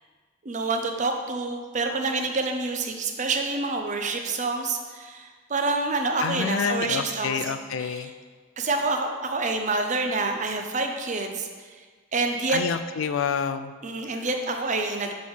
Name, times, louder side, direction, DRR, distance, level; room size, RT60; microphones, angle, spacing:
voice 1, 0.4-8.1 8.6-11.5 12.1-12.6 13.8-15.1, right 3 dB, 40° right, 4 dB, 0.6 m, -27 dB
voice 2, 6.2-8.1 12.5-13.7, left 6 dB, 80° left, 11 dB, 0.4 m, -28 dB
6.3 x 3.6 x 6.2 m, 1.5 s
head